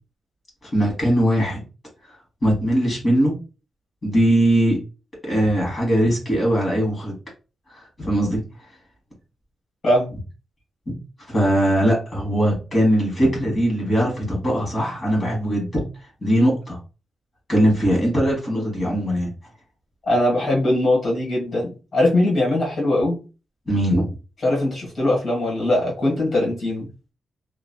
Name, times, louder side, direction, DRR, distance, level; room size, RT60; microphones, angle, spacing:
voice 1, 0.6-1.6 2.4-3.4 4.0-4.8 5.2-7.1 7.7-8.4 10.9-11.0 11.3-15.8 16.2-16.8 17.5-19.3 23.7-24.1, equal, 25° left, -2 dB, 1.3 m, -20 dB
voice 2, 20.1-23.2 24.4-26.9, left 1 dB, 40° left, -3 dB, 1.5 m, -21 dB
2.9 x 2.4 x 2.2 m, 0.32 s
wide cardioid pair, 175°, 0 cm